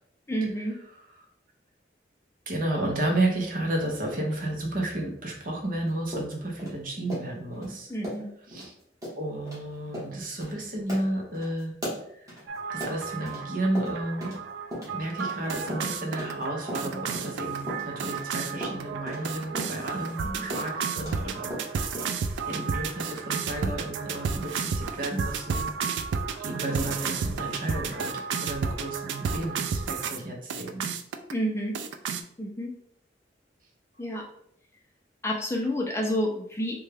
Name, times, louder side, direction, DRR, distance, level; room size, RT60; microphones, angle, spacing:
voice 1, 0.3-0.8 7.9-8.3 31.3-31.8 32.4-32.7 34.0-34.3 35.2-36.7, equal, 15° left, 0 dB, 0.4 m, -29 dB
voice 2, 2.5-7.9 8.5-8.7 9.2-11.7 12.2-12.3 12.7-14.4 14.9-26.0 26.4-30.9, right 1 dB, 50° right, 0 dB, 0.7 m, -32 dB
sound 1, 6.1-7.7 8.0-8.3 8.5-8.7 9.0-9.2 9.5-9.6 9.9-10.1 10.4-10.5 10.9-13.4 13.7-14.4 14.7-17.3 17.7-21.2 21.5-22.2, equal, 20° right, 1.3 m, -37 dB
sound 2, 12.5-30.2 30.5-31.3 31.7-32.2, right 5 dB, 80° right, 0.3 m, -32 dB
3.5 x 2.2 x 3.3 m, 0.67 s
head